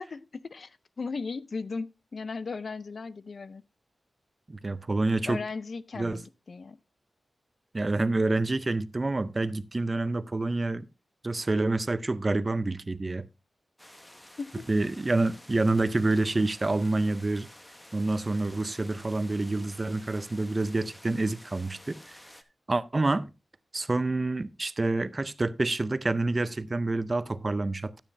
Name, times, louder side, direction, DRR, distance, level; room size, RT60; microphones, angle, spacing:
voice 1, 0.0-3.6 5.2-6.8 14.4-14.7, left 4 dB, 50° left, 0.5 m, -37 dB
voice 2, 4.5-5.4 5.9-6.2 7.7-10.9 11.2-13.3 14.7-17.5 17.9-22.0 22.7-23.3 23.7-28.0, right 2 dB, 25° right, 0.4 m, -27 dB
sound 1, 13.8-22.4, left 1 dB, 10° left, 0.8 m, -51 dB
13.0 x 8.6 x 2.6 m
wide cardioid pair, 135°, 0 cm